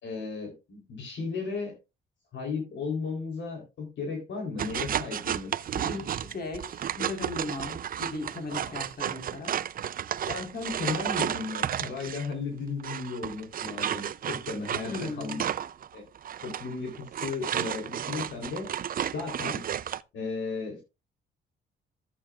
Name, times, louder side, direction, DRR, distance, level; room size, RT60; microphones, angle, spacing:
voice 1, 0.0-1.7 2.3-5.9 8.5-8.7 10.3-15.4 15.9-16.0 16.4-18.7 19.1-19.6 20.1-20.8, left 4 dB, 70° left, 2 dB, 3.7 m, -35 dB
sound 1, 4.6-12.3 12.8-20.0, right 9 dB, 45° right, 0.5 m, -32 dB
voice 2, 5.8-9.6 14.9-15.4, left 2 dB, 50° left, 5 dB, 4.3 m, -37 dB
14.0 x 8.3 x 2.4 m, 0.26 s
cardioid pair, 90°, 20 cm